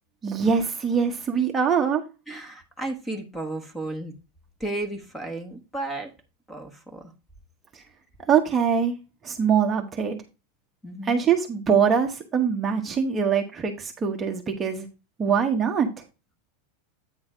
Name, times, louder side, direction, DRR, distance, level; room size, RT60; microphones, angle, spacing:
voice 1, 0.2-2.0 7.7-7.8 8.3-8.9 9.2-10.2 11.0-14.9 15.2-15.9, right 7 dB, 15° right, 2 dB, 1.0 m, -23 dB
voice 2, 2.3-4.1 4.6-6.1 6.5-7.1 10.8-11.2, right 2 dB, 5° left, 8 dB, 1.3 m, -33 dB
8.9 x 3.9 x 4.9 m, 0.30 s
supercardioid pair, 155°, 0 cm